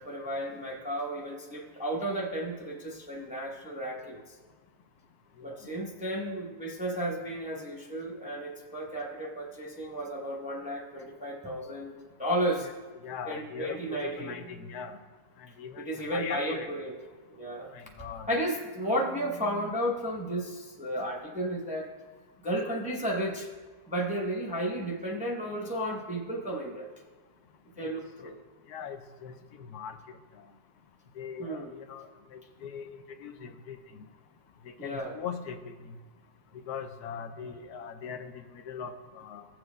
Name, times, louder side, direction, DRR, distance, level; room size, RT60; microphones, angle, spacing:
voice 1, 0.0-4.4 5.4-12.7 13.3-14.3 15.8-17.0 17.3-17.7 18.3-21.9 22.4-23.5 23.9-26.9 27.8-28.4 31.4-31.7 34.8-35.2, right 1 dB, 5° right, -1 dB, 0.6 m, -33 dB
sound 1, 12.8-15.1 18.1-19.7, right 3 dB, 30° left, 1.1 m, -52 dB
voice 2, 13.0-15.0 15.4-15.8 16.1-16.7 17.7-18.3 27.8-27.9 28.7-30.0 31.2-33.8 34.6-35.7 36.7-39.5, left 7 dB, 80° left, 8 dB, 1.1 m, -40 dB
15.5 x 7.5 x 2.2 m, 1.4 s
omnidirectional pair, 1.7 m